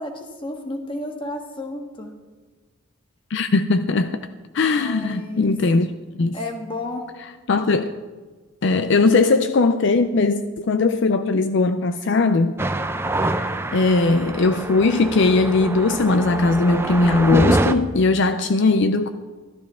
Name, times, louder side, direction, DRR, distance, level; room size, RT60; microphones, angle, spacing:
voice 1, 0.0-2.1 4.7-5.6 6.3-7.0, left 1 dB, 25° left, 1.4 m, -32 dB
voice 2, 3.3-4.2 4.5-5.9 6.1-6.4 7.5-7.9 8.6-12.6 13.3-19.1, left 3 dB, 60° left, 0.5 m, -19 dB
sound 1, 12.6-17.7, right 1 dB, 10° right, 0.5 m, -25 dB
14.0 x 12.5 x 3.7 m
head